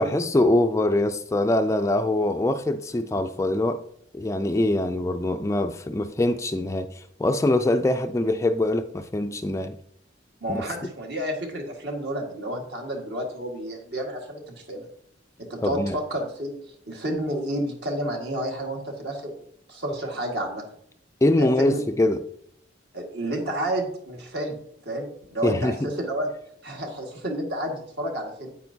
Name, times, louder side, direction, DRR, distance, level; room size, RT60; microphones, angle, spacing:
voice 1, 0.0-3.8 4.1-9.8 10.5-10.6 15.6-16.0 21.2-22.2 25.4-25.9, left 1 dB, 15° left, 0.3 m, -23 dB
voice 2, 10.4-14.9 15.4-16.5 16.9-19.4 19.7-20.6 21.4-21.8 22.9-24.6 24.9-26.3 26.6-28.5, right 1 dB, 60° right, 1.8 m, -30 dB
8.9 x 8.8 x 2.8 m
head